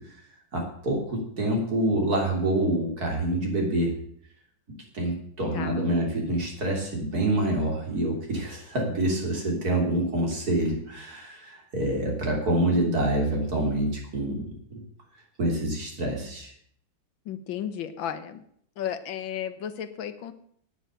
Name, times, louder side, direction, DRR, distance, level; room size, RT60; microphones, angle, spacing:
voice 1, 0.5-3.9 4.9-14.4 14.7-14.8 15.4-16.5, right 1 dB, 50° right, 0 dB, 3.9 m, -26 dB
voice 2, 5.5-5.9 17.3-18.4 18.8-20.3, left 9 dB, 75° left, 11 dB, 1.8 m, -34 dB
10.0 x 9.4 x 8.9 m, 0.66 s
omnidirectional pair, 2.1 m